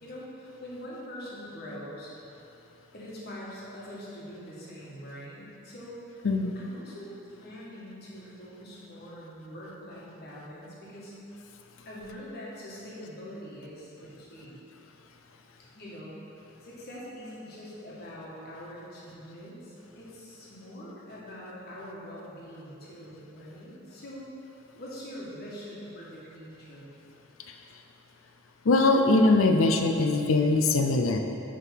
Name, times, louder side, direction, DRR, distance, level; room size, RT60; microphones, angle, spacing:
voice 1, 0.0-2.1 2.9-6.3 6.5-11.1 11.8-14.6 15.6-16.2 16.6-24.3 24.7-26.9, equal, 50° left, -6 dB, 1.6 m, -43 dB
voice 2, 28.6-31.2, left 2 dB, 70° left, 5 dB, 0.5 m, -22 dB
8.1 x 3.8 x 5.8 m, 2.9 s
head